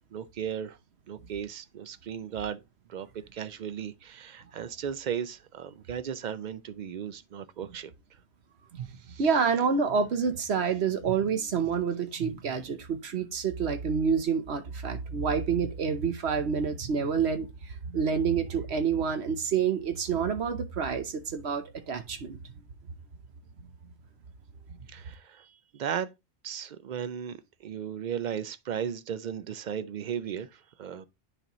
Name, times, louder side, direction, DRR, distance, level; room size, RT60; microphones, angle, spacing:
voice 1, 0.1-0.8 1.1-2.6 2.9-7.9 9.1-9.3 24.9-26.1 26.4-27.4 27.6-31.1, right 8 dB, 55° right, 0.5 m, -36 dB
voice 2, 9.2-17.5 17.9-22.4, right 6 dB, 70° right, 1.2 m, -28 dB
10.0 x 4.2 x 3.0 m
omnidirectional pair, 1.1 m